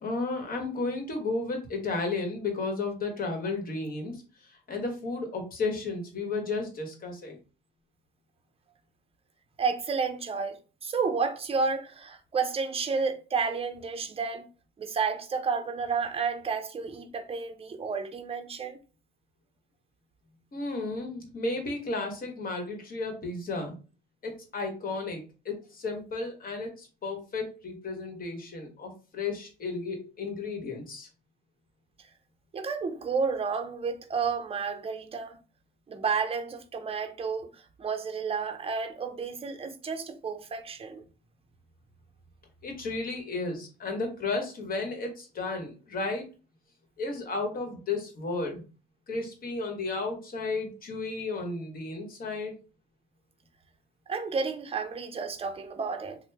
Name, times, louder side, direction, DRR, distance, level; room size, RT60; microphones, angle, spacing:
voice 1, 0.0-7.4 20.5-23.7 24.2-31.1 42.6-46.2 47.0-48.6 49.1-52.5, left 3 dB, 45° left, 1.1 m, -33 dB
voice 2, 9.6-14.5 14.8-18.8 32.5-35.4 35.9-41.0 54.1-56.2, right 5 dB, 30° right, 0.5 m, -31 dB
2.9 x 2.0 x 3.3 m
cardioid pair, 90°, 20 cm